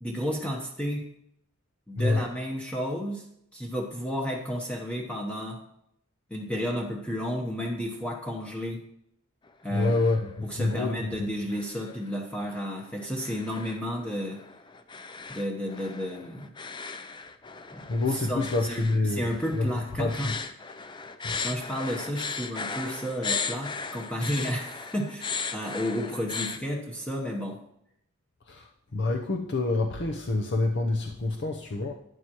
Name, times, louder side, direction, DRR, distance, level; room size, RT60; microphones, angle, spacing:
voice 1, 0.0-1.1 1.9-3.2 3.5-5.6 6.3-8.8 9.6-9.9 10.4-14.4 15.3-16.5 17.7-20.3 21.4-27.6, equal, 5° left, -1 dB, 0.9 m, -32 dB
sound 1, 9.5-10.3 10.6-11.1 11.5-26.6, left 5 dB, 20° left, 0.5 m, -37 dB
voice 2, 9.7-11.1 17.9-19.3 19.5-19.7 20.0-20.3 21.2-21.4 28.5-28.7 28.9-31.9, left 2 dB, 55° left, 3 dB, 0.8 m, -27 dB
12.0 x 9.7 x 3.0 m, 0.74 s
head